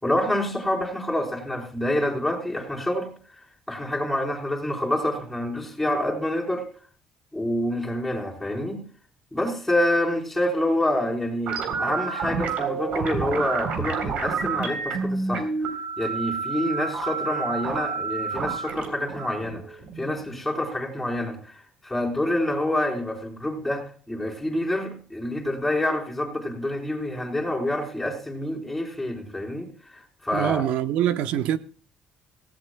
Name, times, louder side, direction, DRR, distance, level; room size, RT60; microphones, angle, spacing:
voice 1, 0.0-3.1 3.7-6.6 7.3-8.8 9.3-15.5 16.0-30.6, left 1 dB, 5° left, 4.6 m, -27 dB
sound 1, 11.5-20.4, right 5 dB, 65° right, 3.8 m, -29 dB
voice 2, 30.3-31.6, right 11 dB, 80° right, 0.9 m, -24 dB
18.0 x 16.5 x 2.3 m
cardioid pair, 150°, 2 cm